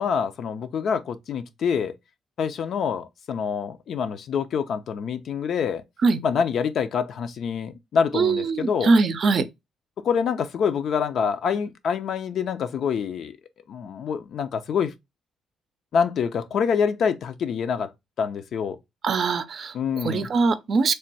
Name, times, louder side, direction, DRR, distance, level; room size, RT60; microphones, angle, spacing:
voice 1, 0.0-1.9 2.4-5.8 6.2-8.9 10.0-13.4 13.7-14.9 15.9-17.9 18.2-18.8 19.7-20.3, left 6 dB, 65° left, 0.5 m, -26 dB
voice 2, 8.1-9.5 19.0-20.9, right 4 dB, 55° right, 0.5 m, -22 dB
3.3 x 2.2 x 4.0 m
cardioid pair, 90°, 0 cm